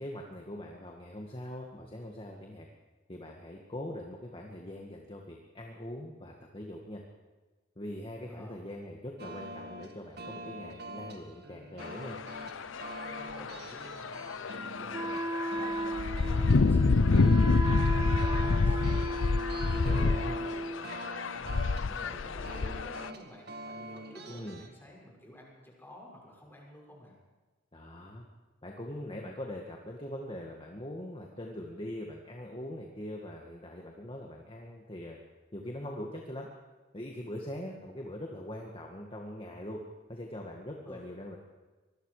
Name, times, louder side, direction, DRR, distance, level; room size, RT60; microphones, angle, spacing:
voice 1, 0.0-2.7 3.1-7.0 7.8-12.2 19.8-20.4 21.8-22.2 24.3-24.6 27.7-28.3 28.6-35.2 35.5-36.5 36.9-39.8 40.1-41.4, left 1 dB, 30° left, 0 dB, 1.9 m, -42 dB
voice 2, 8.3-8.6 13.1-14.3 14.5-27.1 40.8-41.0, left 1 dB, 10° left, -2 dB, 6.7 m, -52 dB
sound 1, 9.2-24.7, right 1 dB, 55° right, 2.0 m, -46 dB
sound 2, 11.8-23.1, left 3 dB, 90° left, 0.6 m, -28 dB
Wind instrument woodwind instrument, 14.9-20.8, right 1 dB, 20° right, 1.0 m, -35 dB
25.0 x 21.5 x 5.0 m, 1.3 s
head